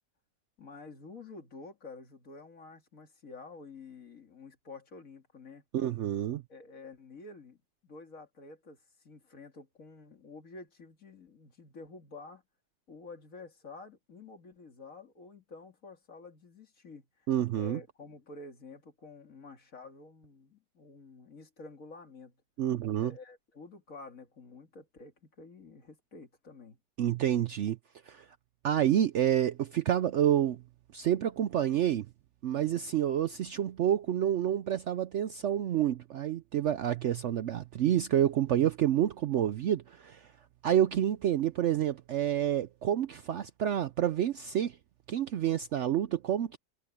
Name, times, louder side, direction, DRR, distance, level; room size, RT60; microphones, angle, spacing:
voice 1, 0.6-5.6 6.5-7.6 7.8-12.4 12.9-22.4 23.0-26.8, left 3 dB, 50° left, 2.8 m, -49 dB
voice 2, 5.7-6.4 17.3-17.8 22.6-23.1 27.0-27.8 28.1-28.2 28.6-30.6 30.9-32.1 32.4-40.3 40.6-44.8 45.1-46.6, right 10 dB, 75° right, 0.6 m, -28 dB
omnidirectional pair, 1.8 m